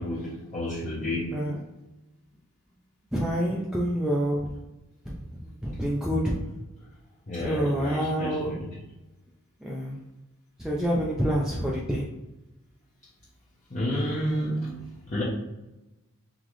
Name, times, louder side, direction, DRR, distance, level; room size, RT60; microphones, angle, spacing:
voice 1, 0.0-1.5 7.3-8.7 13.7-15.2, left 1 dB, 35° left, -8 dB, 0.8 m, -31 dB
voice 2, 3.1-4.5 5.1-6.3 7.4-8.5 9.6-10.0 10.6-12.1, equal, 5° right, -5 dB, 0.5 m, -27 dB
3.8 x 3.7 x 3.1 m, 1.0 s
head